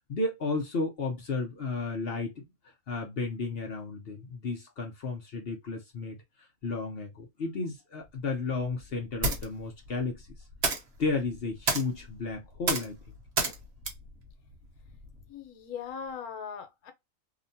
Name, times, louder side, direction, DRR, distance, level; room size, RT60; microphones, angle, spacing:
voice 1, 0.1-2.5 2.9-10.3 11.0-13.2, left 3 dB, 55° left, 0.7 m, -33 dB
sound 1, 8.1-15.3, right 3 dB, 55° right, 1.0 m, -34 dB
voice 2, 15.3-16.9, left 7 dB, 90° left, 1.2 m, -39 dB
2.8 x 2.1 x 2.6 m
omnidirectional pair, 1.5 m